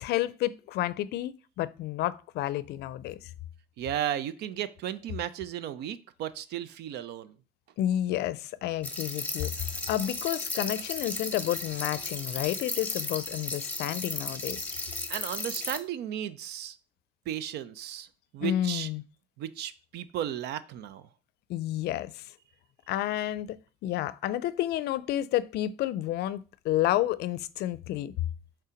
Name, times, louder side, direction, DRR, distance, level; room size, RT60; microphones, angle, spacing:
voice 1, 0.0-3.3 7.8-9.5 9.9-14.6 18.4-19.0 21.5-22.2 22.9-28.1, left 13 dB, 75° left, 0.4 m, -30 dB
voice 2, 3.8-7.4 15.1-16.8 17.3-18.1 18.3-18.9 19.4-21.1, right 11 dB, 80° right, 0.6 m, -34 dB
sound 1, 8.8-15.8, left 2 dB, 10° left, 1.0 m, -35 dB
5.6 x 3.5 x 5.1 m
cardioid pair, 110°, 17 cm